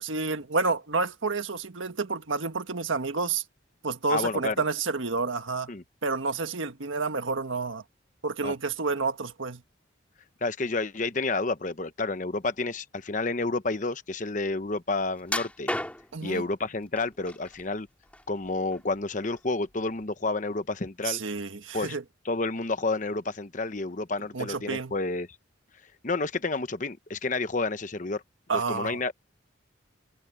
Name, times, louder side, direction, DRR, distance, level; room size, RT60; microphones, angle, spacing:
voice 1, 0.0-3.4 3.8-5.7 6.0-7.8 8.2-9.6 16.1-16.4 21.0-22.0 24.3-24.9 28.5-29.0, right 4 dB, 85° right, 1.5 m, -29 dB
voice 2, 4.1-4.5 5.7-5.8 8.4-8.5 10.4-15.7 16.2-17.9 18.3-21.2 21.7-22.0 22.2-25.3 26.0-28.2 28.5-29.1, left 3 dB, 40° left, 0.9 m, -30 dB
sound 1, 15.2-16.3 17.0-17.6 18.0-18.9 19.3-19.5 20.0-20.1, left 1 dB, 5° left, 3.5 m, -33 dB
head